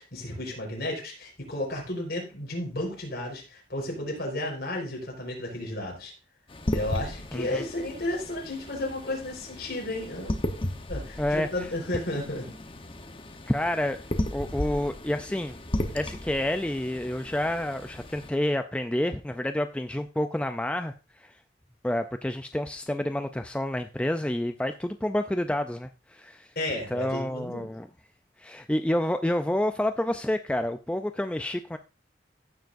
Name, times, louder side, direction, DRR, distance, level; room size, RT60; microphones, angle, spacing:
voice 1, 0.0-6.1 6.7-10.3 10.9-12.5 26.5-27.7, left 1 dB, 60° left, 4.5 m, -33 dB
sound 1, 6.5-18.3, left 1 dB, 30° left, 0.9 m, -35 dB
voice 2, 7.3-7.6 11.2-11.7 13.5-14.0 14.3-15.6 15.9-20.9 21.2-21.3 21.8-26.5 26.9-27.9 28.4-31.8, left 1 dB, 5° left, 0.4 m, -29 dB
15.5 x 7.0 x 2.6 m
head